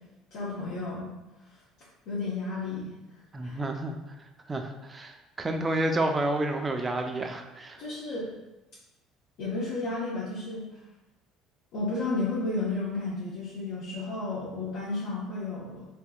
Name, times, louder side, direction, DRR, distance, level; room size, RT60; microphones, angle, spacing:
voice 1, 0.3-1.1 2.1-2.9 3.4-3.6 7.8-8.3 9.4-10.6 11.7-15.8, left 3 dB, 65° left, -8 dB, 0.8 m, -32 dB
voice 2, 3.3-4.0 4.5-7.8, right 1 dB, 20° right, 5 dB, 0.3 m, -30 dB
3.6 x 2.7 x 2.3 m, 1.0 s
cardioid pair, 125°, 0 cm